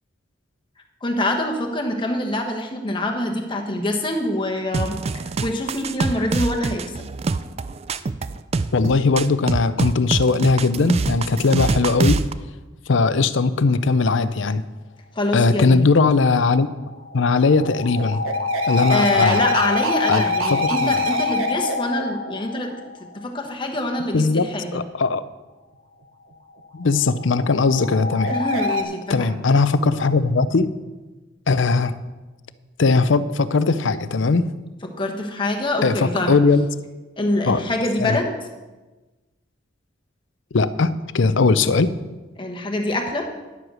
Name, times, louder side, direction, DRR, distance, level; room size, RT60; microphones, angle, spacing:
voice 1, 1.0-6.9 15.1-15.8 18.6-22.7 23.1-24.8 28.3-29.3 34.8-36.3 37.2-38.3 42.4-43.3, left 1 dB, 25° left, 2 dB, 1.2 m, -25 dB
sound 1, 4.7-12.3, right 3 dB, 30° right, 0.3 m, -25 dB
voice 2, 8.7-12.2 12.9-14.6 15.3-16.7 17.1-18.2 18.7-19.4 20.1-21.0 24.1-25.2 26.7-28.3 29.1-30.7 31.5-32.0 32.8-34.5 35.8-36.7 37.5-37.6 38.0-38.2 40.5-41.9, left 4 dB, 65° left, 14 dB, 0.5 m, -19 dB
sound 2, 16.6-23.2 26.6-28.8, left 2 dB, 85° right, 1.1 m, -25 dB
11.0 x 7.9 x 6.3 m, 1.2 s
head